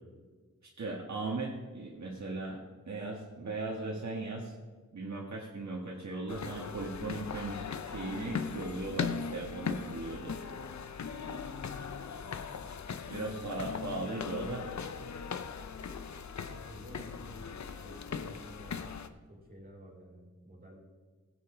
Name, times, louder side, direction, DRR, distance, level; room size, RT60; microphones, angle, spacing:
voice 1, 0.8-4.5 4.9-10.4 13.1-14.7, right 2 dB, 65° right, -2 dB, 1.5 m, -38 dB
sound 1, 6.3-19.1, left 6 dB, 65° left, 0.7 m, -39 dB
voice 2, 16.5-18.9 19.3-20.8, equal, 30° right, -2 dB, 3.8 m, -51 dB
16.5 x 8.0 x 3.8 m, 1.4 s
wide cardioid pair, 95°, 30 cm